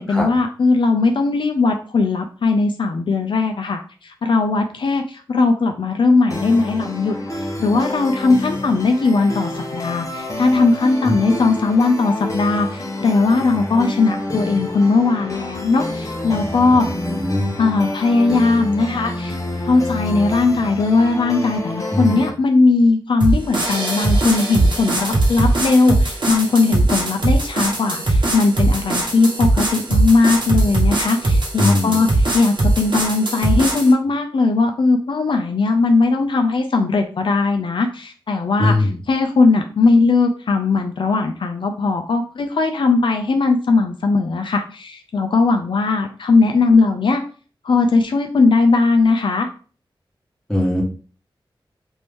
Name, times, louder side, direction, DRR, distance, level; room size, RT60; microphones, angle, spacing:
voice 1, 0.0-16.9 17.6-19.4 19.6-47.2 47.6-49.5, left 3 dB, 70° left, 4 dB, 0.4 m, -18 dB
sound 1, 6.3-22.3, left 1 dB, 35° left, 0.8 m, -28 dB
voice 2, 16.7-17.5 21.9-22.3 31.6-32.0 38.6-39.0 50.5-50.8, left 1 dB, 5° left, -3 dB, 1.3 m, -20 dB
sound 2, 23.2-33.9, right 2 dB, 60° right, 1.0 m, -20 dB
3.0 x 2.6 x 3.5 m, 0.39 s
wide cardioid pair, 90°, 9 cm